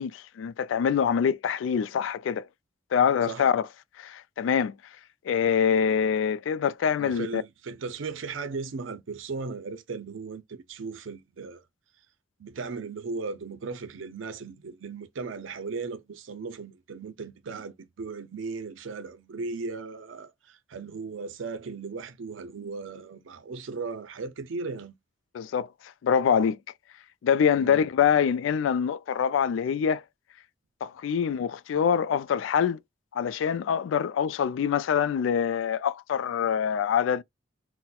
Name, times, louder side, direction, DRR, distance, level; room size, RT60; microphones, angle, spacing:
voice 1, 0.0-2.4 2.9-3.6 4.0-4.7 5.3-7.4 25.3-25.7 26.0-26.6 27.2-30.0 30.8-32.8 33.1-37.2, left 7 dB, 80° left, 0.3 m, -25 dB
voice 2, 7.0-11.6 12.4-25.0 27.6-27.9, right 4 dB, 85° right, 0.5 m, -37 dB
4.2 x 2.1 x 2.2 m
head